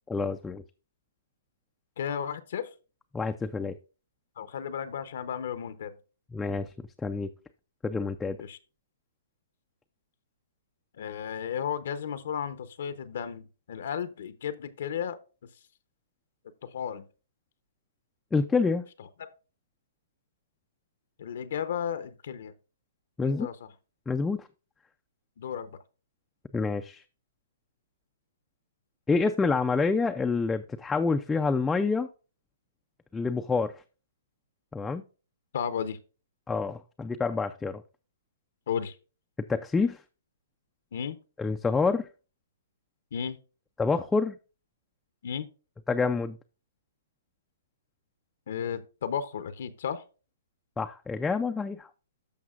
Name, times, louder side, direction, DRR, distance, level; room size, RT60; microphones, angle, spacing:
voice 1, 0.1-0.6 3.1-3.8 6.3-6.7 7.0-7.3 7.8-8.4 18.3-18.8 23.2-23.5 24.1-24.4 26.5-27.0 29.1-32.1 33.1-33.7 34.7-35.0 36.5-37.8 39.5-40.0 41.4-42.1 43.8-44.4 45.9-46.4 50.8-51.9, left 4 dB, 10° left, 0.4 m, -27 dB
voice 2, 2.0-2.7 4.4-6.0 8.4-8.6 11.0-15.2 16.6-17.1 21.2-22.5 23.2-23.6 25.4-25.7 35.5-36.0 38.7-39.0 40.9-41.2 43.1-43.4 45.2-45.5 48.5-50.0, left 8 dB, 65° left, 0.7 m, -34 dB
14.0 x 5.4 x 2.4 m
hypercardioid pair, 145°, 0 cm